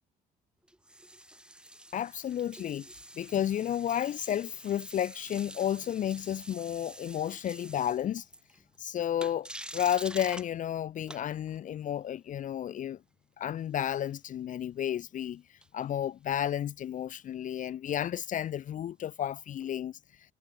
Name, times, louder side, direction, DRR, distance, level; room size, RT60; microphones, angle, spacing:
sound 1, 0.6-8.8 9.2-10.5 11.1-11.6 15.6-16.0 19.6-19.7, right 1 dB, 5° right, 7.8 m, -47 dB
voice 1, 1.9-2.9 3.2-8.2 8.8-13.0 13.4-15.4 15.7-20.0, left 10 dB, 50° left, 0.8 m, -32 dB
cardioid pair, 110°, 17 cm